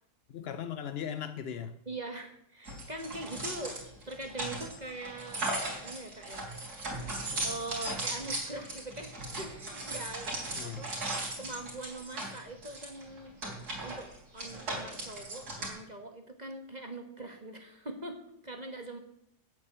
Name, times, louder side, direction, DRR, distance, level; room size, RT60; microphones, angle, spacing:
voice 1, 0.3-1.8 10.5-10.9, left 8 dB, 60° left, 0.6 m, -38 dB
voice 2, 1.8-3.8 4.1-6.5 7.4-10.9 11.4-13.3 13.8-19.0, right 2 dB, 25° right, 1.5 m, -42 dB
sound 1, 2.7-15.7, right 2 dB, 65° right, 4.5 m, -37 dB
9.0 x 8.6 x 8.7 m
omnidirectional pair, 1.8 m